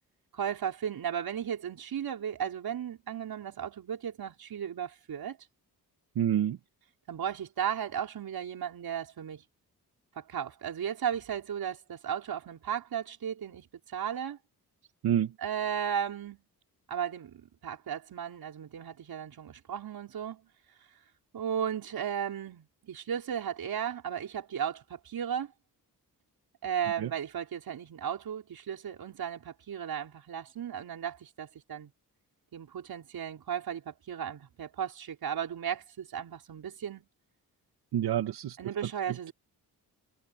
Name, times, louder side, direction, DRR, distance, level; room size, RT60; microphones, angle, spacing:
voice 1, 0.3-5.4 7.1-9.4 10.1-14.4 15.4-16.4 16.9-20.5 21.3-25.5 26.6-31.9 32.5-37.1 38.6-39.3, right 8 dB, 70° right, 4.8 m, -35 dB
voice 2, 6.1-6.6 15.0-15.3 27.0-27.1 37.9-39.3, right 10 dB, 90° right, 2.5 m, -29 dB
cardioid pair, 70°, 37 cm